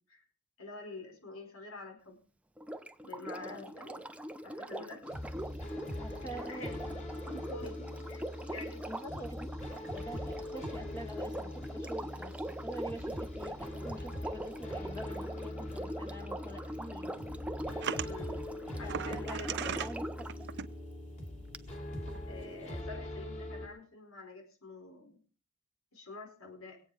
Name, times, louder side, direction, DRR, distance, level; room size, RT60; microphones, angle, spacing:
voice 1, 0.6-2.2 3.0-4.0 4.4-5.0 6.3-6.8 7.3-8.9 18.0-18.4 18.8-19.9 22.3-25.2 25.9-26.8, left 2 dB, 85° left, 4 dB, 5.0 m, -47 dB
Sink (filling or washing), 2.6-20.4 21.5-21.6, right 1 dB, 5° right, 0.7 m, -42 dB
voice 2, 3.4-3.7 6.0-6.7 8.8-9.6 9.9-17.1 18.8-19.4 19.7-20.5, equal, 15° left, 3 dB, 1.3 m, -45 dB
sound 1, 5.0-23.7, left 1 dB, 35° left, 3.6 m, -42 dB
sound 2, 17.8-18.1 18.9-19.9 20.3-20.7 21.7-21.8 22.1-22.2, right 7 dB, 55° right, 0.8 m, -37 dB
24.5 x 9.0 x 5.0 m, 0.37 s
head